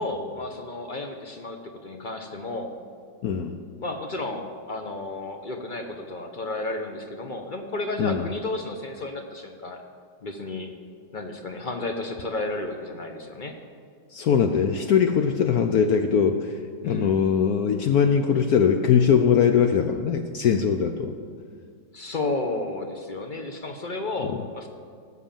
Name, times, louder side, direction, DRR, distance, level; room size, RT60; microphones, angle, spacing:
voice 1, 0.0-2.7 3.8-9.8 10.2-10.7 11.1-13.6 16.8-17.2 21.9-24.7, left 2 dB, 50° left, 5 dB, 0.6 m, -32 dB
voice 2, 3.2-3.6 8.0-8.3 14.1-16.6 16.8-21.1 24.3-24.4, left 7 dB, 70° left, 7 dB, 0.9 m, -21 dB
16.5 x 6.3 x 7.4 m, 2.1 s
omnidirectional pair, 2.1 m